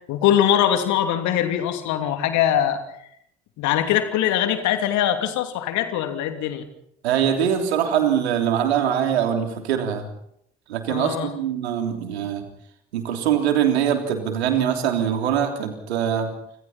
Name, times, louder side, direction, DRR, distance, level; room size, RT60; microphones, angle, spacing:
voice 1, 0.1-2.8 3.6-6.7 10.9-11.3, left 10 dB, 60° left, 7 dB, 3.0 m, -22 dB
voice 2, 7.0-10.1 10.7-12.5 12.9-16.3, right 9 dB, 75° right, 5 dB, 3.4 m, -23 dB
28.5 x 27.0 x 4.4 m, 0.72 s
figure-of-eight pair, 50°, 32 cm